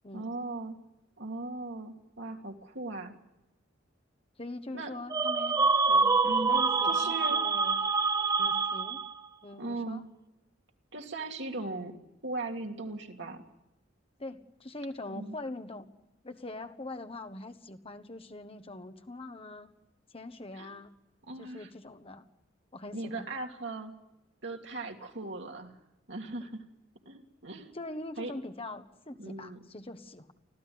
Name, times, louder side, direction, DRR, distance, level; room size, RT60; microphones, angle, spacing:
voice 1, 0.1-0.8 1.2-3.1 4.7-4.9 6.2-6.6 6.8-7.4 9.6-10.0 10.9-12.0 12.2-13.4 15.1-15.4 20.5-20.7 21.2-21.7 22.9-23.9 24.4-25.7 26.1-26.6 27.0-27.7 28.2-28.3 29.2-29.6, right 2 dB, 65° right, 2 dB, 2.9 m, -38 dB
voice 2, 4.4-5.6 5.9-6.2 6.5-7.8 8.4-9.0 9.4-10.0 14.2-15.9 16.2-19.7 20.1-20.9 21.4-22.3 22.7-23.3 27.7-30.3, left 2 dB, 30° left, 7 dB, 1.5 m, -43 dB
sound 1, 5.1-9.3, right 4 dB, 20° right, 0.9 m, -26 dB
25.0 x 15.5 x 9.6 m, 0.95 s
head